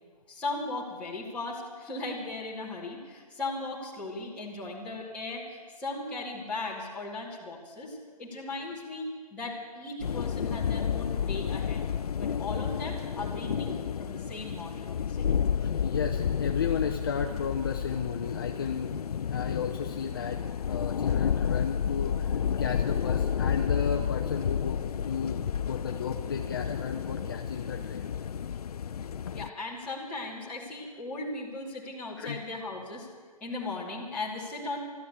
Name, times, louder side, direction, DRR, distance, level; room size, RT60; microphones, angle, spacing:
voice 1, 0.3-11.8 12.2-15.3 29.3-33.1 33.4-34.8, left 2 dB, 5° left, -8 dB, 2.5 m, -37 dB
sound 1, 10.0-29.5, left 8 dB, 70° left, 0.5 m, -31 dB
voice 2, 15.6-18.9 19.3-20.4 20.7-28.1 32.2-32.4, left 6 dB, 35° left, 3 dB, 0.7 m, -34 dB
13.5 x 13.0 x 8.2 m, 1.5 s
hypercardioid pair, 165°, 20 cm